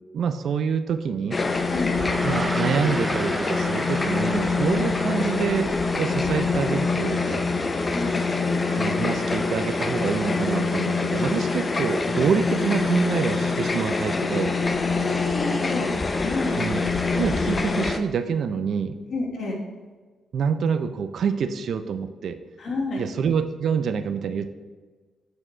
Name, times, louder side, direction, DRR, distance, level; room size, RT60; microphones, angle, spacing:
voice 1, 0.1-1.4 2.2-7.4 8.7-14.5 16.6-16.9 17.1-19.0 20.3-22.4 23.0-24.5, right 6 dB, 65° right, 10 dB, 0.5 m, -26 dB
sound 1, 1.3-18.0, left 3 dB, 30° left, 0.5 m, -25 dB
Gong, 1.8-11.5, right 2 dB, 20° right, 0.6 m, -38 dB
voice 2, 14.9-15.9 16.2-16.6 19.1-19.6 22.6-23.0, left 3 dB, 60° left, -1 dB, 1.8 m, -29 dB
8.5 x 4.7 x 3.3 m, 1.4 s
cardioid pair, 100°, 0 cm